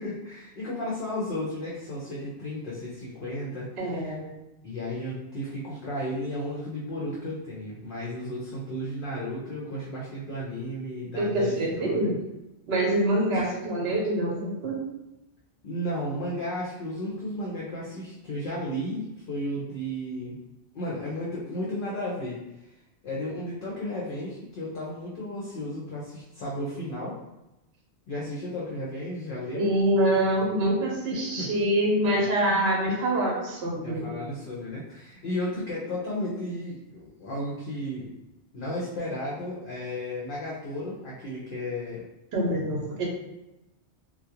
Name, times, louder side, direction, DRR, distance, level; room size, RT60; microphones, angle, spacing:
voice 1, 0.0-4.1 4.6-12.0 13.3-13.6 15.6-20.4 20.7-22.4 23.0-27.2 28.1-29.7 31.4-31.5 33.8-38.2 38.5-42.0, left 1 dB, 55° left, -6 dB, 0.7 m, -34 dB
voice 2, 3.8-4.3 11.1-12.2 12.7-14.8 29.5-34.1 42.3-43.1, right 1 dB, 65° right, -1 dB, 0.9 m, -25 dB
2.3 x 2.1 x 2.8 m, 0.96 s
omnidirectional pair, 1.2 m